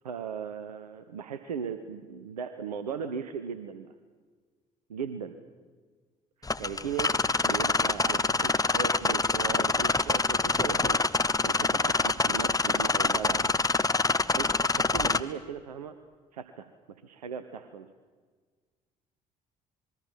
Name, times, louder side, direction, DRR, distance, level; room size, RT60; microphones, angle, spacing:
voice 1, 0.0-3.9 4.9-5.4 6.4-7.1 7.4-11.1 11.4-13.5 14.3-16.0 16.3-17.9, right 7 dB, 85° right, 10 dB, 1.0 m, -38 dB
sound 1, 6.4-15.2, left 3 dB, 20° left, 1.1 m, -26 dB
27.0 x 22.5 x 7.5 m, 1.5 s
figure-of-eight pair, 50°, 20 cm